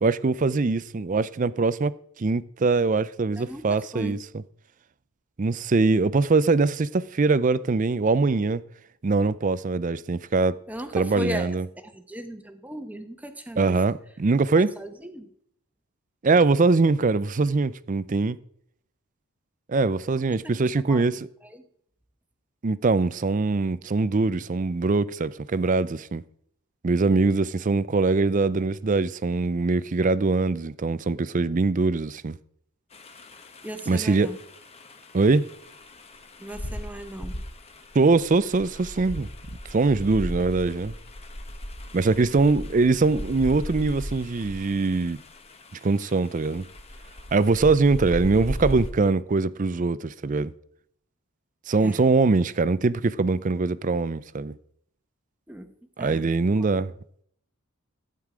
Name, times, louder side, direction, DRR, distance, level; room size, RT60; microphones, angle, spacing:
voice 1, 0.0-1.9 2.2-4.4 5.4-8.6 9.0-10.6 10.9-11.7 13.6-14.7 16.2-18.4 19.7-21.3 22.6-26.2 26.8-32.4 33.9-34.3 35.1-35.5 37.9-39.3 39.7-40.9 41.9-45.2 45.8-46.7 47.3-50.5 51.7-54.5 56.0-56.9, right 3 dB, 35° right, 0.4 m, -22 dB
voice 2, 3.4-4.2 10.7-11.6 11.8-13.8 14.6-15.3 20.9-21.1 21.4-21.6 33.6-34.4 36.4-37.4 51.8-52.1 55.5-55.7 56.0-56.7, equal, 5° right, 1.0 m, -37 dB
sound 1, 32.9-48.9, equal, 25° left, 1.0 m, -38 dB
15.0 x 9.1 x 4.9 m
head